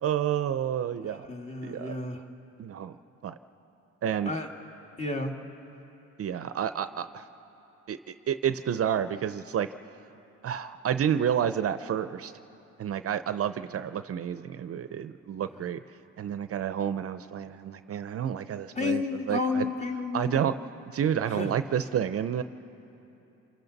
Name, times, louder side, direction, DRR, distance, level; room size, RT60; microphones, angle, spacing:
voice 1, 0.0-1.3 1.6-2.0 2.6-2.9 3.2-3.3 4.0-4.3 6.2-7.2 7.9-8.0 8.3-9.7 10.4-12.3 12.8-15.8 16.2-19.7 20.1-20.5 20.9-22.4, right 9 dB, 50° right, 11 dB, 0.6 m, -29 dB
voice 2, 1.0-2.2 4.3-4.5 5.0-5.3 15.5-15.6 18.7-20.4 21.3-21.5, left 3 dB, 25° left, 3 dB, 2.1 m, -31 dB
27.0 x 24.5 x 4.1 m, 3.0 s
cardioid pair, 90°, 30 cm